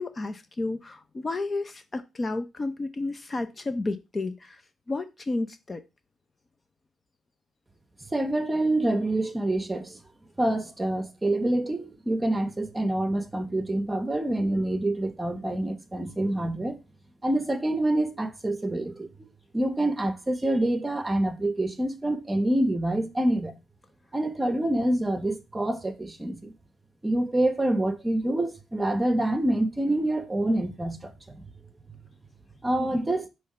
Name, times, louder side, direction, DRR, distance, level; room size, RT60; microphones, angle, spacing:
voice 1, 0.0-4.6 4.9-5.8 32.8-32.9, left 2 dB, 30° left, 0.6 m, -32 dB
voice 2, 8.1-10.0 10.4-16.8 17.2-19.1 19.5-23.5 24.1-26.5 27.0-31.5 32.6-33.3, right 1 dB, 15° right, 1.0 m, -26 dB
5.5 x 3.2 x 5.5 m
cardioid pair, 90°, 0 cm